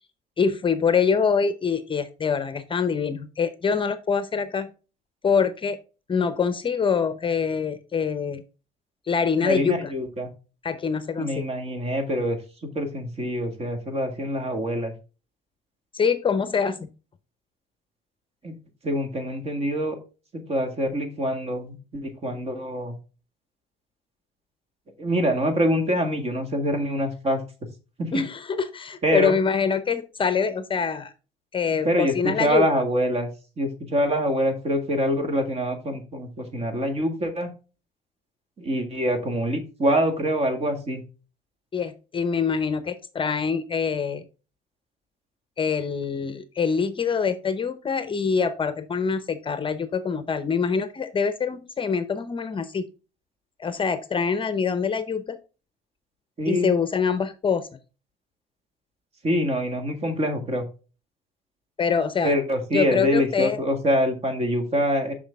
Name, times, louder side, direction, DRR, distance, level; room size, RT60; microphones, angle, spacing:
voice 1, 0.4-4.7 5.2-5.8 6.1-8.4 9.1-9.9 10.6-11.4 15.9-16.9 28.1-31.1 31.5-32.6 41.7-44.2 45.6-52.9 53.6-55.4 56.5-57.7 61.8-62.3 62.7-63.6, left 6 dB, 30° left, 12 dB, 0.7 m, -25 dB
voice 2, 9.4-10.3 11.2-12.4 12.7-14.9 18.4-18.5 18.8-20.0 20.3-23.0 25.0-27.4 28.0-28.1 29.0-29.3 31.8-33.3 33.6-37.5 38.6-41.0 56.4-56.7 59.2-60.6 62.2-65.1, equal, 40° right, 6 dB, 1.9 m, -25 dB
6.3 x 6.0 x 3.5 m, 0.33 s
cardioid pair, 110°, 17 cm